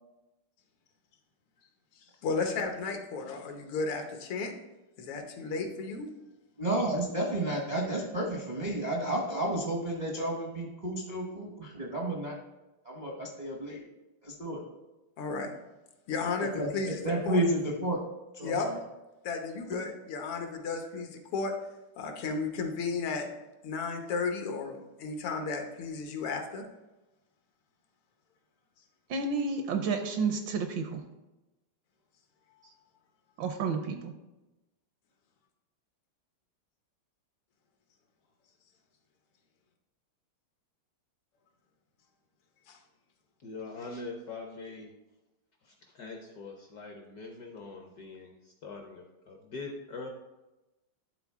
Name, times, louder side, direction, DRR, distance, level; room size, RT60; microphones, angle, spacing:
voice 1, 2.2-4.5 5.0-6.1 15.2-15.5 16.1-17.4 18.4-18.7 19.2-21.5 22.0-23.3 23.6-26.6 42.7-42.8, left 4 dB, 80° left, 4 dB, 1.8 m, -33 dB
voice 2, 6.6-12.3 12.8-13.8 14.2-14.6 16.4-18.0 18.3-18.8, right 1 dB, 45° right, -1 dB, 0.5 m, -31 dB
voice 3, 29.1-31.0 33.4-34.1, right 4 dB, 75° right, 6 dB, 1.2 m, -31 dB
voice 4, 43.4-44.9 45.6-50.1, left 3 dB, 65° left, 2 dB, 1.0 m, -43 dB
11.5 x 3.9 x 3.6 m, 1.0 s
omnidirectional pair, 2.4 m